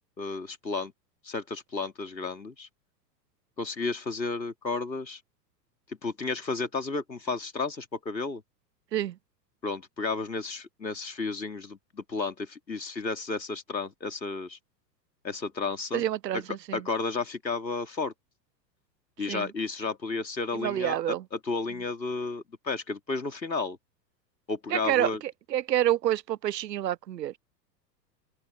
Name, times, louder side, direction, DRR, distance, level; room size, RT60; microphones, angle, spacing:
voice 1, 0.2-0.9 1.2-2.7 3.6-5.2 5.9-8.4 9.6-14.6 15.2-16.0 16.3-16.4 16.7-18.1 19.2-23.8 24.5-25.2, left 3 dB, 85° left, 3.1 m, -32 dB
voice 2, 15.9-16.8 19.3-19.5 20.5-21.2 24.7-27.3, right 12 dB, 80° right, 0.6 m, -28 dB
open air
figure-of-eight pair, 95°, 50 cm